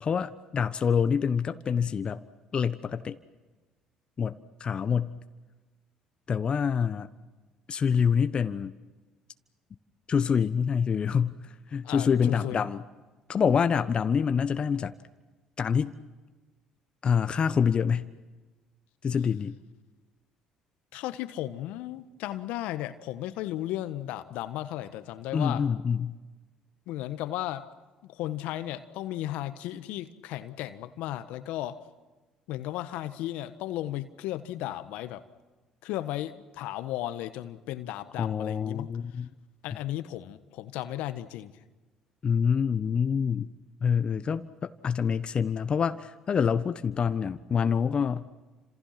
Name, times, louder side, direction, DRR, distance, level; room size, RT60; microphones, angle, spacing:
voice 1, 0.0-2.2 2.5-3.2 4.2-5.2 6.3-7.1 7.7-8.7 10.1-11.4 11.7-12.8 13.3-14.9 15.6-15.9 17.0-18.1 19.0-19.5 25.3-26.1 38.2-39.3 42.2-43.5 43.8-48.3, left 7 dB, 45° left, 10 dB, 1.1 m, -26 dB
voice 2, 11.8-12.7 20.9-25.6 26.9-27.7 28.2-31.8 32.5-35.2 35.8-38.9 39.6-41.5, left 14 dB, 70° left, 11 dB, 1.4 m, -35 dB
30.0 x 27.0 x 6.0 m, 1.2 s
hypercardioid pair, 60°, 2 cm